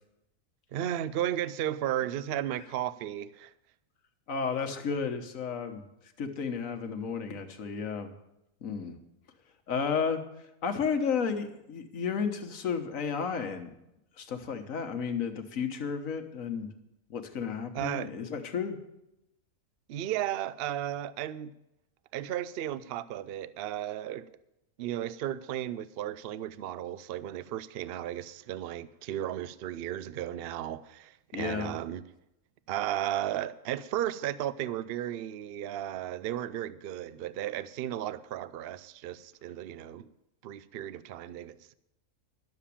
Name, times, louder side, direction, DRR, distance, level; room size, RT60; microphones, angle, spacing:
voice 1, 0.7-3.5 17.7-18.1 19.9-21.5 22.1-24.3 24.8-32.0 32.7-40.1 40.4-41.7, right 12 dB, 65° right, 0.6 m, -34 dB
voice 2, 4.3-5.8 6.2-8.1 8.6-8.9 9.7-10.2 10.6-13.7 14.2-16.7 17.1-18.8 31.3-31.7, left 6 dB, 65° left, 1.5 m, -32 dB
12.0 x 7.3 x 8.5 m
omnidirectional pair, 1.5 m